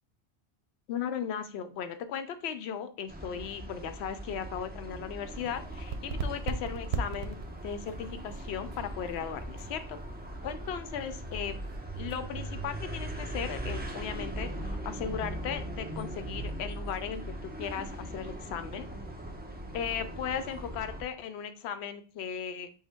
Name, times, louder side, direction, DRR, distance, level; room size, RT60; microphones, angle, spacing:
voice 1, 0.9-7.4 7.6-10.0 10.4-11.6 11.9-18.9 19.7-22.7, left 8 dB, 85° left, 10 dB, 0.8 m, -37 dB
sound 1, 3.1-21.0, right 1 dB, 10° right, 0.7 m, -40 dB
sound 2, 5.2-12.2, right 4 dB, 80° right, 0.9 m, -40 dB
5.6 x 2.2 x 4.3 m, 0.40 s
omnidirectional pair, 1.1 m